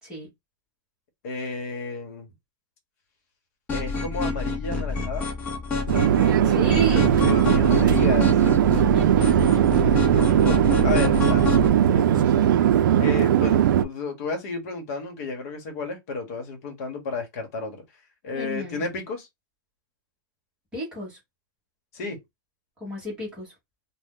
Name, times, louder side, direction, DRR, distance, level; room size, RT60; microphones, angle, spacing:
voice 1, 1.2-2.3 3.7-5.3 7.2-8.3 10.1-10.6 10.8-12.4 13.0-17.8 18.2-19.3 21.9-22.2, left 4 dB, 45° left, 1.0 m, -32 dB
sound 1, 3.7-11.7, left 4 dB, 10° left, 0.5 m, -28 dB
voice 2, 5.9-7.2 8.9-10.1 18.3-18.8 20.7-21.2 22.8-23.5, equal, 5° right, 1.1 m, -34 dB
Conversation / Chatter / Fixed-wing aircraft airplane, 5.9-13.8, right 10 dB, 70° right, 0.4 m, -19 dB
2.6 x 2.1 x 3.6 m
supercardioid pair, 180°, 11 cm